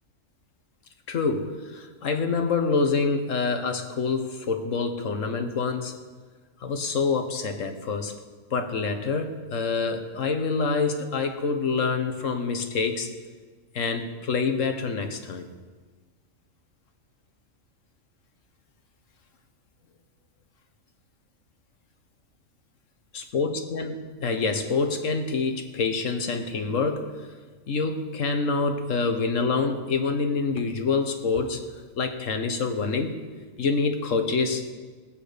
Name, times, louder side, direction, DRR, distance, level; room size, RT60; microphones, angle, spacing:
voice 1, 1.1-5.9 6.6-8.1 8.5-13.1 13.7-15.5 23.3-27.1 27.7-31.6 32.0-33.1 33.6-34.7, left 4 dB, 80° left, 6 dB, 1.5 m, -26 dB
18.0 x 8.7 x 5.1 m, 1.4 s
omnidirectional pair, 1.3 m